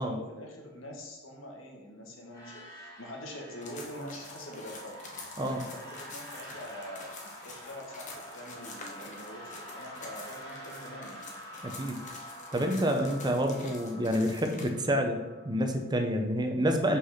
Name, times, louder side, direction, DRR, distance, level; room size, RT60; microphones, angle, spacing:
voice 1, 0.0-4.9 5.7-11.2, left 1 dB, 80° left, 0 dB, 1.5 m, -44 dB
sound 1, 2.3-16.0, equal, 15° left, 2.4 m, -47 dB
sound 2, 3.6-14.7, left 3 dB, 40° left, 1.1 m, -48 dB
voice 2, 5.4-5.7 11.6-12.0 12.5-17.0, equal, 20° right, 4 dB, 0.7 m, -28 dB
5.7 x 4.1 x 5.8 m, 1.1 s
head